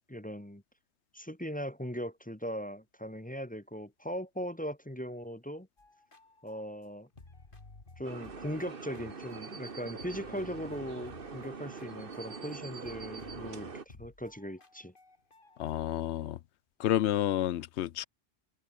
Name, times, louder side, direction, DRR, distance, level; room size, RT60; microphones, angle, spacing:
voice 1, 0.1-0.6 1.1-5.7 6.4-7.1 8.0-14.9, equal, 10° left, 1.1 m, -39 dB
sound 1, 5.8-9.7 10.0-12.6 12.8-15.9, left 3 dB, 50° left, 2.9 m, -55 dB
sound 2, 8.0-13.8, right 4 dB, 50° right, 1.7 m, -43 dB
voice 2, 15.6-16.4 16.8-18.1, left 12 dB, 75° left, 0.9 m, -30 dB
omnidirectional pair, 1.2 m